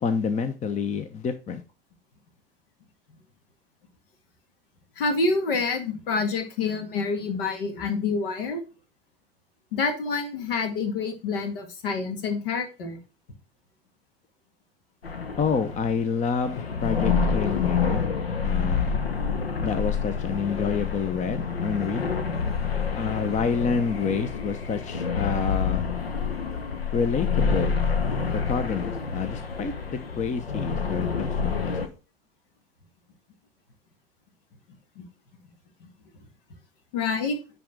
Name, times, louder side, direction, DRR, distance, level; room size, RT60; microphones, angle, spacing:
voice 1, 0.0-1.6 15.4-18.1 18.4-18.9 19.6-22.0 22.9-25.8 26.9-27.7 28.3-29.7 30.2-31.8, left 5 dB, 25° left, 11 dB, 0.8 m, -28 dB
voice 2, 5.0-8.6 9.7-13.0 35.0-35.1 35.8-35.9 36.9-37.4, left 4 dB, 65° left, 6 dB, 2.2 m, -27 dB
sound 1, 15.0-31.9, left 5 dB, 85° left, 1.1 m, -28 dB
10.0 x 4.1 x 3.6 m, 0.33 s
figure-of-eight pair, 80°, 29 cm